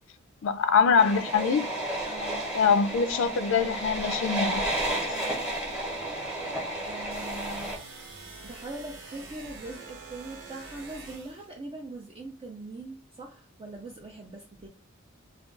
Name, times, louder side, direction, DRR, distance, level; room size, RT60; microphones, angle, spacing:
voice 1, 0.4-1.7 2.5-4.6, left 5 dB, 65° left, 0.4 m, -23 dB
sound 1, 1.0-7.8, right 1 dB, 5° right, 0.9 m, -32 dB
voice 2, 2.0-2.6 5.1-5.5 6.8-7.8 8.4-14.7, right 2 dB, 30° right, 0.4 m, -42 dB
sound 2, 7.1-11.5, right 3 dB, 60° right, 0.9 m, -45 dB
2.3 x 2.3 x 3.7 m
head